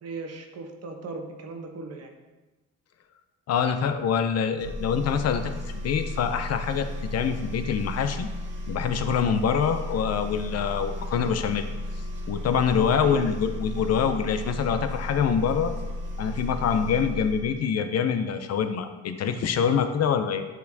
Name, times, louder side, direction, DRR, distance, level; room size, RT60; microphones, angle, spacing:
voice 1, 0.0-2.1 12.9-13.2, right 3 dB, 55° right, 3 dB, 0.9 m, -38 dB
voice 2, 3.5-8.3 8.7-11.7 12.3-15.7 16.2-20.5, left 7 dB, 55° left, 8 dB, 0.6 m, -25 dB
sound 1, 4.6-17.6, left 1 dB, 40° right, 1.3 m, -34 dB
8.1 x 4.5 x 2.7 m, 1.2 s
cardioid pair, 90°, 30 cm